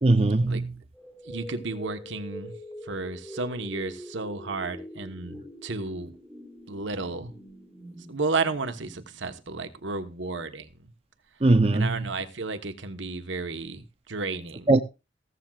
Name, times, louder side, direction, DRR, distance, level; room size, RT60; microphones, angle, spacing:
voice 1, 0.0-0.7 11.4-12.1 14.7-14.8, right 2 dB, 30° right, 0.6 m, -20 dB
sound 1, 0.9-9.9, equal, 10° left, 3.5 m, -44 dB
voice 2, 1.2-2.5 2.8-6.1 6.7-7.3 8.1-10.9 11.7-14.7, right 3 dB, 70° right, 1.2 m, -32 dB
15.0 x 14.0 x 2.4 m
head